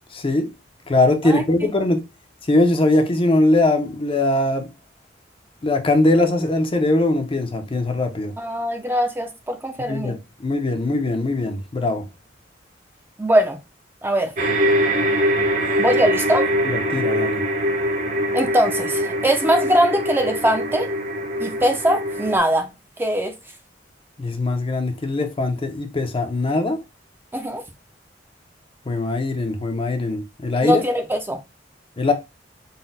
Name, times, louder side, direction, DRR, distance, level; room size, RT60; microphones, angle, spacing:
voice 1, 0.1-0.5 0.9-2.0 2.5-4.7 5.6-8.3 9.9-12.1 16.6-17.4 24.2-26.8 28.9-30.8 32.0-32.1, left 2 dB, 30° left, 0.5 m, -21 dB
voice 2, 8.4-10.2 13.2-13.6 14.0-14.3 15.8-16.5 18.3-20.9 21.4-22.7 23.0-23.3 27.3-27.6 30.6-31.4, equal, 10° right, 0.5 m, -21 dB
sound 1, 14.4-22.4, equal, 45° right, 0.8 m, -23 dB
4.0 x 2.1 x 3.8 m
head